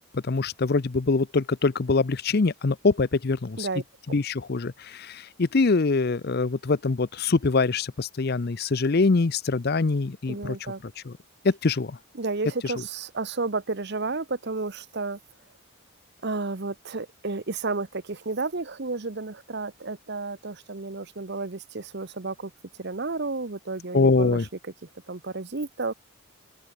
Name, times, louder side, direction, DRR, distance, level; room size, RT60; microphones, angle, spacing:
voice 1, 0.1-3.7 4.1-11.2 11.4-12.0 12.6-12.7 23.9-24.5, left 3 dB, 45° left, 0.6 m, -24 dB
voice 2, 10.3-10.8 12.2-15.2 16.2-22.5 22.8-24.4 25.1-25.9, right 3 dB, 50° right, 1.0 m, -32 dB
open air
head